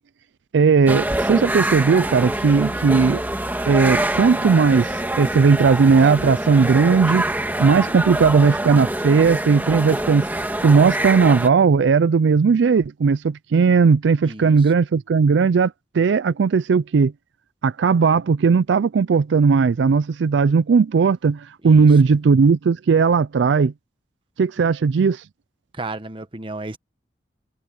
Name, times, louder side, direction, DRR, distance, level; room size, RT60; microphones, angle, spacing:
voice 1, 0.5-3.2 3.7-7.2 7.6-10.3 10.6-17.1 17.6-23.7 24.4-25.2, right 5 dB, 75° right, 0.4 m, -17 dB
sound 1, 0.9-11.5, right 1 dB, 10° right, 1.6 m, -25 dB
voice 2, 14.2-14.7 21.6-21.9 25.7-26.8, right 2 dB, 30° right, 1.1 m, -33 dB
head